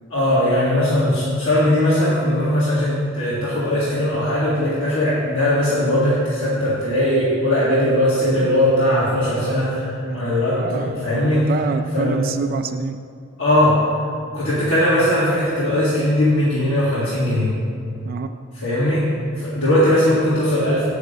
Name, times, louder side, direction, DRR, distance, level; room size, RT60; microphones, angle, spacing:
voice 1, 0.1-11.4 11.9-12.2 13.4-13.8 14.3-17.5 18.5-19.0 19.4-20.9, left 1 dB, 85° left, -10 dB, 2.0 m, -19 dB
voice 2, 10.1-13.0 18.0-18.3, right 4 dB, 45° right, 6 dB, 0.3 m, -27 dB
7.5 x 6.3 x 6.7 m, 2.4 s
head